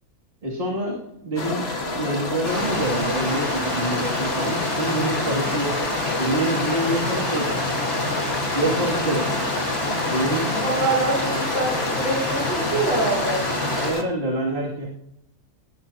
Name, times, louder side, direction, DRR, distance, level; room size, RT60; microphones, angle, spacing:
voice 1, 0.4-1.6 2.0-5.7 6.2-7.6 8.5-9.3 10.1-10.6 13.8-14.9, right 1 dB, 35° right, -4 dB, 2.8 m, -26 dB
sound 1, 1.4-14.0, left 3 dB, 40° left, 2.0 m, -29 dB
Stream, 2.4-13.9, left 1 dB, 20° left, 5.4 m, -28 dB
voice 2, 10.5-13.5, right 2 dB, 65° right, -1 dB, 7.2 m, -25 dB
19.5 x 18.0 x 2.9 m, 0.82 s
omnidirectional pair, 1.6 m